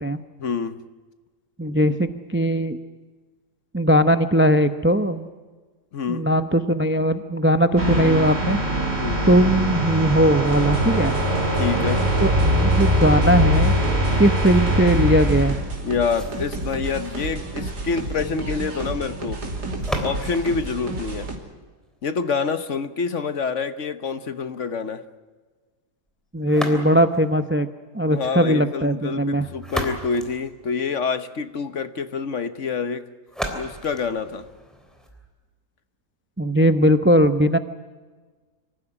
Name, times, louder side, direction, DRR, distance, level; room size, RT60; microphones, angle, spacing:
voice 1, 0.4-0.8 5.9-6.3 9.0-9.3 11.5-12.0 15.8-19.4 20.0-21.3 22.0-25.0 28.1-33.0 33.5-34.4, left 5 dB, 50° left, 11 dB, 1.2 m, -27 dB
voice 2, 1.6-2.8 3.7-5.3 6.1-8.6 9.3-11.1 12.2-13.7 14.2-15.6 26.3-27.7 27.9-29.5 36.4-37.6, equal, 15° right, 10 dB, 0.3 m, -19 dB
sound 1, 7.8-15.6, equal, 35° right, 4.5 m, -21 dB
sound 2, 10.5-21.4, right 2 dB, 75° right, 3.4 m, -31 dB
sound 3, 16.1-22.1 26.4-27.3 29.3-31.3 33.3-35.3, equal, ahead, 3.4 m, -35 dB
25.5 x 15.0 x 9.9 m, 1.4 s
omnidirectional pair, 1.8 m